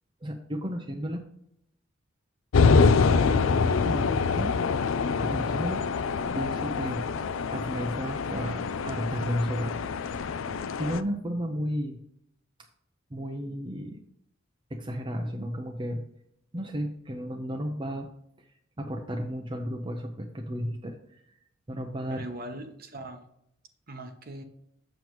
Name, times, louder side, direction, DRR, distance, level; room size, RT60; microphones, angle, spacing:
voice 1, 0.2-1.2 3.0-4.8 5.1-5.8 6.3-7.1 7.5-9.8 10.8-12.0 13.1-14.0 14.7-16.0 16.5-18.1 18.4-18.5 18.8-21.0 21.7-22.3, equal, 25° right, 3 dB, 0.6 m, -33 dB
sound 1, 2.5-11.0, left 5 dB, 75° left, 0.4 m, -25 dB
voice 2, 22.1-23.3 23.9-24.4, right 1 dB, 45° right, 6 dB, 1.0 m, -40 dB
7.6 x 7.1 x 3.1 m, 0.74 s
head